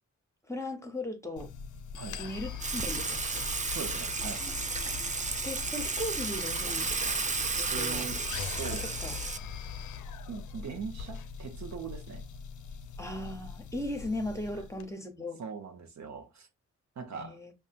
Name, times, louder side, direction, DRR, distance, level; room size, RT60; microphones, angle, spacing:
voice 1, 0.5-1.5 2.2-3.5 5.4-7.3 7.5-8.1 8.7-9.1 13.0-15.4 17.1-17.5, left 1 dB, 10° left, 0.9 m, -38 dB
sound 1, 1.4-14.9, left 7 dB, 90° left, 0.5 m, -41 dB
Water / Water tap faucet / Sink (filling or washing), 2.6-9.4, right 4 dB, 25° right, 0.5 m, -33 dB
voice 2, 3.7-4.4 7.7-8.2 8.6-8.9 10.3-12.2 15.4-16.5 17.0-17.4, right 6 dB, 70° right, 0.8 m, -40 dB
5.4 x 2.3 x 2.5 m
cardioid pair, 65°, 30 cm